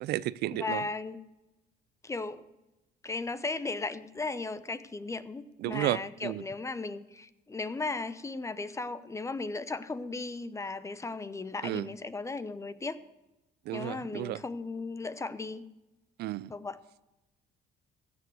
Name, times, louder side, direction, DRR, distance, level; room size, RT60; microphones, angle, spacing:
voice 1, 0.0-0.8 5.6-6.4 11.6-11.9 13.7-14.4 16.2-16.5, right 15 dB, 70° right, 0.4 m, -32 dB
voice 2, 0.5-1.2 2.0-2.5 3.0-13.0 13.7-15.6 16.5-16.8, left 3 dB, 15° left, 0.8 m, -36 dB
16.0 x 7.0 x 6.3 m
cardioid pair, 110°, 17 cm